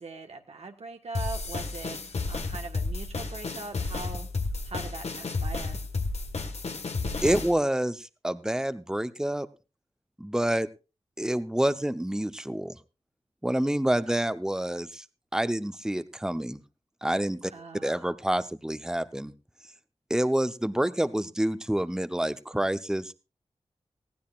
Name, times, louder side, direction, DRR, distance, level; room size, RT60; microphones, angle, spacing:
voice 1, 0.0-2.0 2.3-4.3 4.7-5.8 17.5-18.0, right 3 dB, 75° right, 4 dB, 1.5 m, -41 dB
sound 1, 1.1-7.5, left 3 dB, 75° left, 1.6 m, -32 dB
voice 2, 7.2-9.5 10.2-10.7 11.2-12.8 13.4-15.0 15.3-16.6 17.0-17.5 17.8-19.3 20.1-23.1, right 1 dB, 5° right, 12 dB, 0.8 m, -28 dB
19.5 x 15.0 x 2.5 m, 0.30 s
cardioid pair, 50°, 11 cm